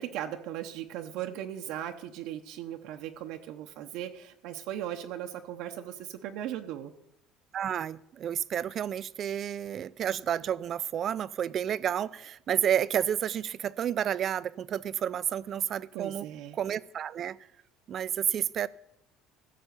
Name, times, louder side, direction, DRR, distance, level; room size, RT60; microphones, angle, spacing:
voice 1, 0.0-6.9 15.9-16.6, right 11 dB, 70° right, 4 dB, 0.8 m, -38 dB
voice 2, 7.5-16.2 16.5-17.4 17.9-18.7, right 9 dB, 40° right, 17 dB, 0.4 m, -30 dB
15.5 x 6.8 x 6.8 m, 0.79 s
cardioid pair, 145°, 0 cm